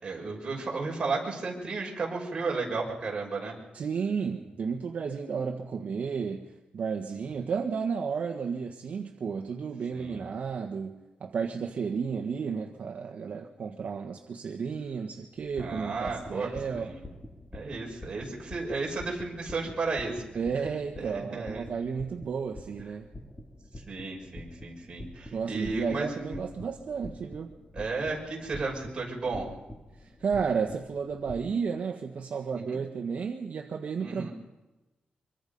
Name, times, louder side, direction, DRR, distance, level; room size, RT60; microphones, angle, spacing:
voice 1, 0.0-3.6 9.9-10.2 15.6-16.5 16.8-17.0 17.5-20.2 21.0-21.7 23.9-26.4 27.7-29.5 32.5-32.8 34.0-34.3, right 3 dB, 30° right, -2 dB, 6.2 m, -33 dB
voice 2, 3.7-6.5 6.7-16.9 20.3-23.1 25.3-27.5 30.0-34.3, right 6 dB, 55° right, 2 dB, 1.4 m, -32 dB
sound 1, 15.4-31.5, left 1 dB, 15° left, 2.2 m, -46 dB
25.0 x 23.5 x 5.4 m, 1.1 s
wide cardioid pair, 165°, 3 cm